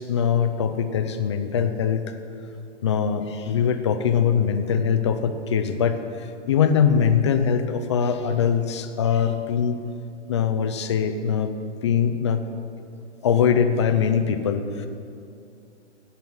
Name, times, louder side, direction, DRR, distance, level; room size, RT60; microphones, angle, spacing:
voice 1, 0.0-2.2 2.8-9.8 10.3-11.5 11.8-12.4 13.2-14.9, left 7 dB, 25° left, 8 dB, 0.4 m, -22 dB
16.5 x 5.6 x 6.2 m, 2.5 s
hypercardioid pair, 145°, 37 cm